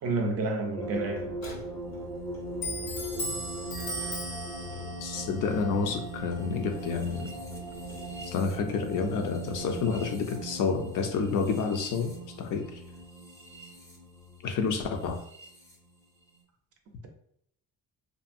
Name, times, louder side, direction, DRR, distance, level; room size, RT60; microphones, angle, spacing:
voice 1, 0.0-1.4, right 3 dB, 45° right, 0.5 m, -30 dB
Clock, 0.8-10.1, left 1 dB, 80° left, 1.0 m, -41 dB
sound 1, 0.8-15.8, right 1 dB, 10° left, 0.4 m, -40 dB
voice 2, 5.0-7.4 8.3-12.8 14.4-15.2, left 5 dB, 60° left, 0.5 m, -29 dB
2.7 x 2.5 x 2.5 m
cardioid pair, 150°, 36 cm